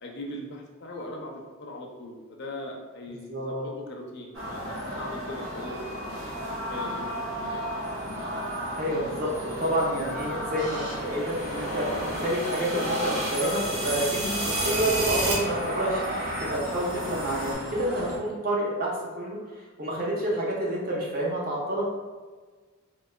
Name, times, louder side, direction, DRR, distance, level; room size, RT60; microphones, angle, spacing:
voice 1, 0.0-4.6 4.9-6.2 6.7-7.6 9.5-9.7, left 1 dB, 55° left, 0 dB, 0.5 m, -40 dB
voice 2, 3.1-3.7 8.8-21.9, right 1 dB, 45° right, -4 dB, 0.7 m, -29 dB
sound 1, 4.3-18.2, equal, 90° right, 1.2 m, -34 dB
sound 2, 10.6-17.5, right 1 dB, 60° right, 1.2 m, -32 dB
3.7 x 2.7 x 2.2 m, 1.4 s
head